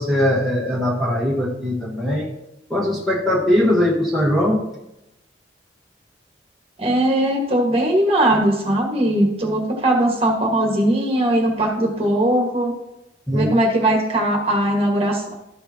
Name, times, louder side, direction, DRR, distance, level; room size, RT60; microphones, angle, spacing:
voice 1, 0.0-2.3 2.7-4.6 13.3-13.5, left 1 dB, ahead, -6 dB, 1.4 m, -20 dB
voice 2, 6.8-12.7 13.3-15.3, right 1 dB, 30° right, -1 dB, 1.7 m, -19 dB
13.0 x 7.0 x 2.9 m, 0.89 s
head